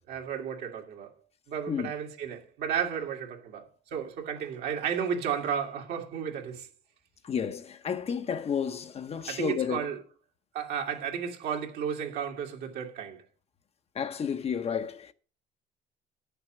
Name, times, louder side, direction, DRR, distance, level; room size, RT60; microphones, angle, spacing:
voice 1, 0.1-1.1 1.5-6.7 9.3-10.0 10.5-13.2, right 7 dB, 70° right, 2.1 m, -33 dB
voice 2, 7.2-9.8 13.9-15.1, left 7 dB, 35° left, 0.8 m, -31 dB
10.0 x 6.9 x 6.1 m
cardioid pair, 110°, 17 cm